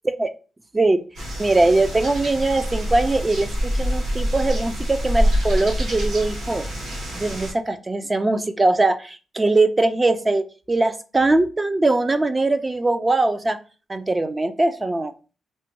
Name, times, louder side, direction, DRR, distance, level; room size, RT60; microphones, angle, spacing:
sound 1, 1.1-7.5, equal, 75° right, 1.6 m, -25 dB
voice 1, 1.4-6.6 7.2-13.6 13.9-15.1, right 2 dB, 25° right, 11 dB, 0.4 m, -21 dB
4.3 x 2.1 x 2.9 m, 0.36 s
supercardioid pair, 60°, 0 cm